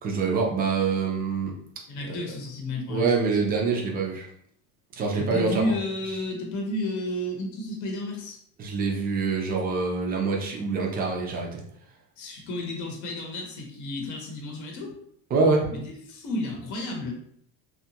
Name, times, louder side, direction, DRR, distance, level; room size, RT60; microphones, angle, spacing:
voice 1, 0.0-1.5 2.0-2.2 2.9-4.3 4.9-5.7 8.6-11.6 15.3-15.7, right 4 dB, 25° right, -1 dB, 0.4 m, -25 dB
voice 2, 1.9-3.3 5.2-8.4 12.2-15.0 15.7-17.1, left 1 dB, 45° left, 0 dB, 0.8 m, -32 dB
2.7 x 2.3 x 2.7 m, 0.67 s
cardioid pair, 155°, 42 cm